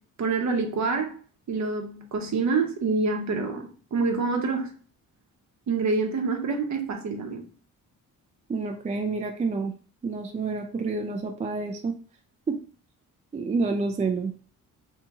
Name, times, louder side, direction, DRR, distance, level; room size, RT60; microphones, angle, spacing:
voice 1, 0.2-1.1 1.5-4.7 5.7-7.4, right 4 dB, 50° right, 0.8 m, -26 dB
voice 2, 8.5-9.7 10.0-11.9 12.5-12.6 13.3-14.3, right 4 dB, 20° right, 0.3 m, -28 dB
2.9 x 2.8 x 3.4 m
cardioid pair, 110°, 35 cm